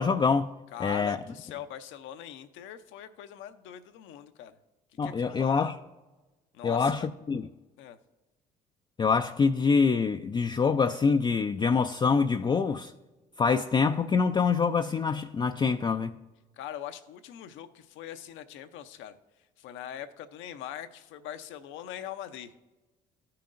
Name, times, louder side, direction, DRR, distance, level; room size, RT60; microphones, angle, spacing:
voice 1, 0.0-0.5 0.8-1.2 5.0-5.7 6.6-7.0 7.3-7.5 9.0-12.9 13.4-16.1, left 5 dB, 20° left, 0.4 m, -25 dB
voice 2, 0.7-4.5 5.0-5.7 6.5-7.1 7.8-8.0 16.6-19.1 19.6-22.5, left 10 dB, 65° left, 0.7 m, -41 dB
14.5 x 5.8 x 2.5 m
hypercardioid pair, 55°, 21 cm